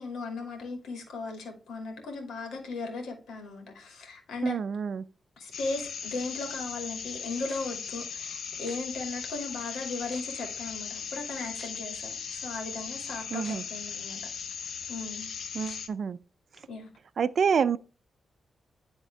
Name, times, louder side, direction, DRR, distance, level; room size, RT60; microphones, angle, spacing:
voice 1, 0.0-4.6 5.4-14.2 14.9-15.3 16.7-16.9, left 3 dB, 85° left, 2.4 m, -37 dB
voice 2, 4.4-5.0 13.3-13.6 15.5-16.2 17.2-17.8, right 6 dB, 60° right, 0.4 m, -27 dB
sound 1, 5.5-15.9, left 6 dB, 70° left, 0.9 m, -38 dB
sound 2, 7.5-7.8 8.7-8.8 9.5-9.6 10.1-10.5 11.6-11.7 13.4-13.5 14.1-14.2 15.7-15.8 16.5-16.6, left 1 dB, 20° left, 1.3 m, -48 dB
10.5 x 3.7 x 3.3 m
cardioid pair, 105°, 0 cm